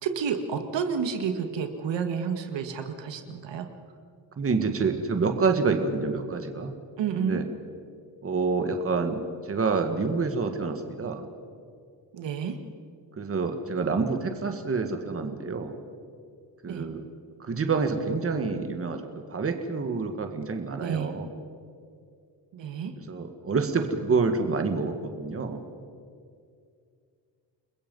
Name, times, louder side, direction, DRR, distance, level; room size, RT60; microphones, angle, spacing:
voice 1, 0.0-3.7 7.0-7.4 12.1-12.6 16.7-16.9 20.8-21.1 22.5-22.9, right 6 dB, 80° right, 6 dB, 2.0 m, -30 dB
voice 2, 4.4-6.7 7.2-7.5 8.2-11.3 13.2-15.7 16.6-17.0 17.4-19.0 19.3-21.3 23.1-25.6, right 4 dB, 30° right, 6 dB, 1.8 m, -27 dB
30.0 x 21.5 x 5.5 m, 2.3 s
cardioid pair, 140°, 43 cm